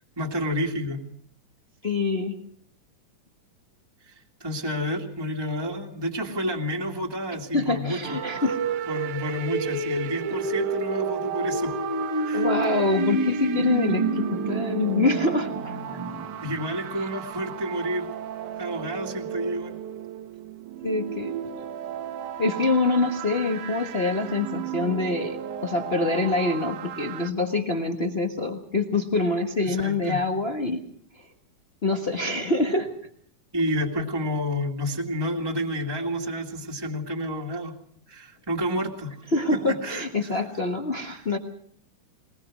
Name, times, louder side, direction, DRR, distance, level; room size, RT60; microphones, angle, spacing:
voice 1, 0.2-1.0 4.0-8.2 8.9-11.7 12.2-12.4 16.4-18.1 18.6-19.8 29.6-30.2 33.5-37.7 38.1-39.1 39.7-40.4 41.1-41.4, equal, 10° right, 0 dB, 1.6 m, -30 dB
voice 2, 1.8-2.4 7.5-8.6 12.3-15.8 20.8-21.3 22.4-30.9 31.8-32.9 39.3-41.4, left 3 dB, 80° left, 3 dB, 0.5 m, -25 dB
sound 1, 8.0-27.3, right 11 dB, 80° right, 2.5 m, -34 dB
Spindown Huge, 8.1-17.1, right 1 dB, 40° right, 0.3 m, -30 dB
21.5 x 20.5 x 6.2 m, 0.64 s
omnidirectional pair, 3.6 m